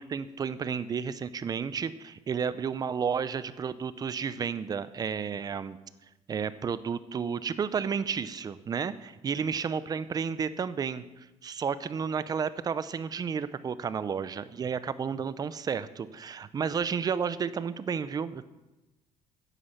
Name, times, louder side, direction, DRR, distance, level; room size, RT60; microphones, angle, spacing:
voice 1, 0.0-5.8 6.3-18.4, right 6 dB, 30° right, 15 dB, 0.6 m, -32 dB
9.9 x 8.2 x 7.3 m, 1.1 s
cardioid pair, 125°, 12 cm